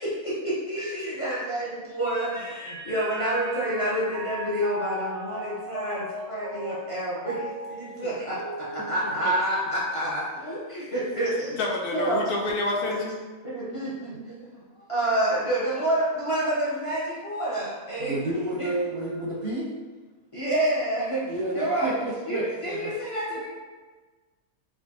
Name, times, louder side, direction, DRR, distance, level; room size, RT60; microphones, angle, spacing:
voice 1, 0.0-11.6 11.9-12.2 12.9-13.0 13.4-18.1 18.6-18.7 20.3-21.2 21.5-21.9 22.3-23.5, right 1 dB, 40° left, -8 dB, 0.4 m, -28 dB
Mallet percussion, 2.0-9.8, right 1 dB, 85° right, 1.2 m, -38 dB
voice 2, 11.6-13.2, left 2 dB, 80° left, 0 dB, 1.1 m, -28 dB
voice 3, 18.0-19.7 21.3-22.9 23.3-23.4, right 2 dB, 60° right, -5 dB, 0.7 m, -30 dB
4.6 x 2.3 x 2.7 m, 1.3 s
omnidirectional pair, 1.6 m